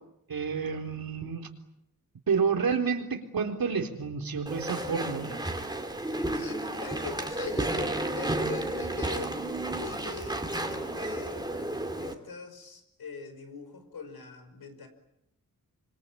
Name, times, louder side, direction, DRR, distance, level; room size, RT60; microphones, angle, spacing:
voice 1, 0.3-1.5 2.3-5.4, right 5 dB, 75° right, 4 dB, 4.0 m, -29 dB
Walk footsteps / Chatter / Squeak, 4.5-12.1, right 1 dB, 10° right, 2.8 m, -32 dB
voice 2, 6.0-11.5 12.0-14.9, left 5 dB, 90° left, 8 dB, 5.3 m, -42 dB
26.0 x 25.5 x 8.8 m, 0.80 s
wide cardioid pair, 150°, 36 cm